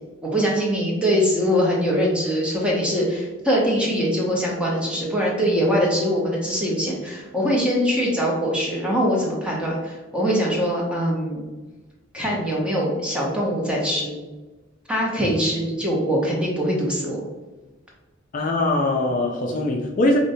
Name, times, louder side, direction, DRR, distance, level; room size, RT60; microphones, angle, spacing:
voice 1, 0.2-11.4 12.1-14.2 14.9-17.2, equal, 5° right, -3 dB, 0.7 m, -22 dB
voice 2, 18.3-20.2, left 2 dB, 40° left, 0 dB, 0.3 m, -21 dB
5.0 x 2.1 x 2.6 m, 1.2 s
head